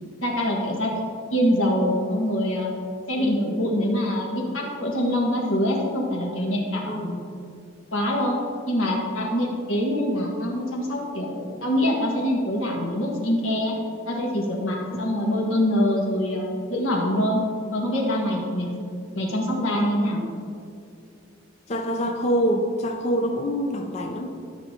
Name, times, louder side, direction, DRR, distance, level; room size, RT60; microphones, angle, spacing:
voice 1, 0.2-0.9 1.3-2.7 3.1-7.2 7.9-8.4 8.7-13.7 14.1-17.4 17.7-18.8 19.1-20.2, equal, 85° left, -1 dB, 1.6 m, -24 dB
voice 2, 6.8-7.2 15.1-15.2 18.7-18.8 21.7-24.3, equal, 35° left, 2 dB, 0.5 m, -26 dB
12.5 x 6.4 x 2.8 m, 2.4 s
head